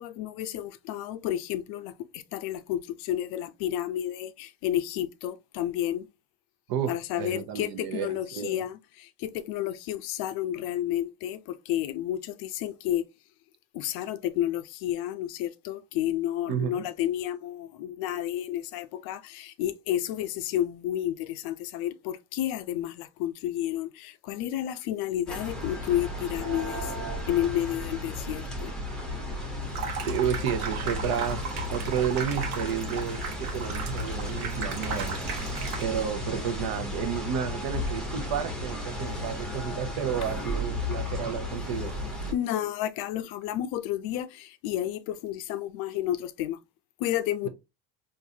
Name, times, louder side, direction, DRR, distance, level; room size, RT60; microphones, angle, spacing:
voice 1, 0.0-6.1 6.9-13.0 13.7-26.9 27.3-28.7 42.3-46.6 47.0-47.5, left 12 dB, 60° left, 0.5 m, -31 dB
voice 2, 6.7-8.6 16.5-16.9 30.0-35.5 35.8-41.9, right 8 dB, 55° right, 0.8 m, -31 dB
sound 1, 25.3-42.3, left 1 dB, ahead, 0.8 m, -34 dB
Water tap faucet / Sink (filling or washing), 29.6-36.1, right 5 dB, 85° right, 1.0 m, -36 dB
3.8 x 2.6 x 2.7 m
cardioid pair, 135°, 43 cm